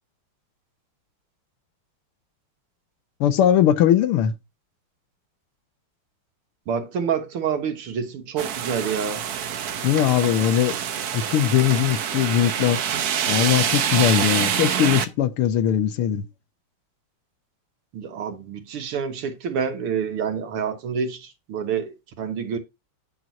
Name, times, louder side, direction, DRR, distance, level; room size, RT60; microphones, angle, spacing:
voice 1, 3.2-4.3 9.8-10.8 11.1-12.9 13.3-16.3, left 10 dB, 80° left, 1.8 m, -20 dB
voice 2, 6.7-9.2 17.9-22.6, right 7 dB, 80° right, 2.2 m, -28 dB
sound 1, 8.4-15.0, right 9 dB, 60° right, 1.0 m, -26 dB
9.3 x 6.1 x 3.9 m
omnidirectional pair, 2.4 m